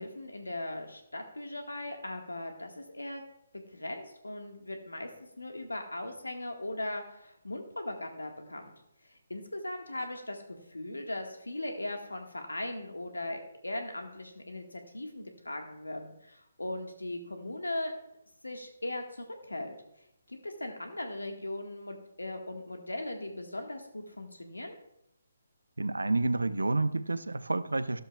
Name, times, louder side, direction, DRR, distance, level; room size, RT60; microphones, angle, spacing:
voice 1, 0.0-3.2 3.7-5.1 5.4-8.7 9.0-17.9 18.4-19.7 20.3-24.8, left 1 dB, 80° left, 4 dB, 1.6 m, -39 dB
voice 2, 25.8-28.0, right 2 dB, 75° right, 14 dB, 0.6 m, -29 dB
13.0 x 13.0 x 2.4 m, 0.78 s
figure-of-eight pair, 140°, 0 cm